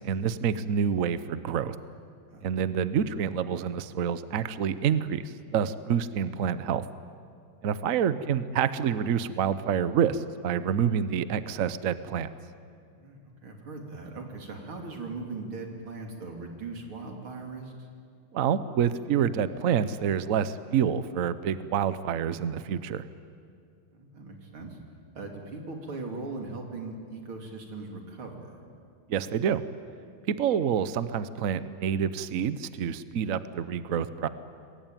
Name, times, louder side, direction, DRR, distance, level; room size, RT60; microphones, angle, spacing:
voice 1, 0.0-1.8 2.4-6.9 7.6-12.3 18.3-23.1 29.1-29.6 30.3-34.3, right 8 dB, 55° right, 13 dB, 1.0 m, -27 dB
voice 2, 13.0-17.7 23.9-24.8 25.1-28.5, right 3 dB, 90° right, 2 dB, 3.9 m, -39 dB
27.0 x 21.5 x 9.1 m, 2.3 s
omnidirectional pair, 2.2 m